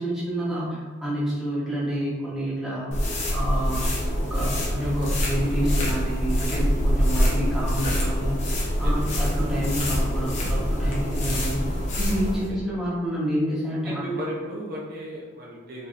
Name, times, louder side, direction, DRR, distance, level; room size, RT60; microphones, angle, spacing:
voice 1, 0.0-2.9 3.3-3.9 4.2-8.4 8.8-11.6 12.0-14.0, equal, ahead, -9 dB, 1.1 m, -28 dB
sound 1, 2.9-12.5, equal, 35° left, 0.8 m, -25 dB
voice 2, 4.5-5.0 7.0-7.6 8.8-8.9 12.5-12.8 13.8-15.9, right 1 dB, 45° right, -4 dB, 0.6 m, -36 dB
4.4 x 3.4 x 2.5 m, 1.4 s
head